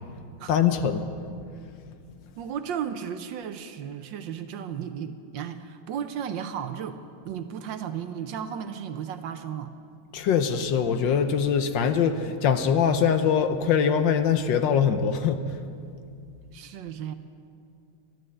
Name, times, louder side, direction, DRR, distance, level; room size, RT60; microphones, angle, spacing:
voice 1, 0.5-1.0 10.1-15.4, left 7 dB, 70° left, 9 dB, 1.3 m, -23 dB
voice 2, 2.3-9.7 16.5-17.1, right 8 dB, 70° right, 9 dB, 1.3 m, -34 dB
13.0 x 12.0 x 7.8 m, 2.3 s
omnidirectional pair, 2.3 m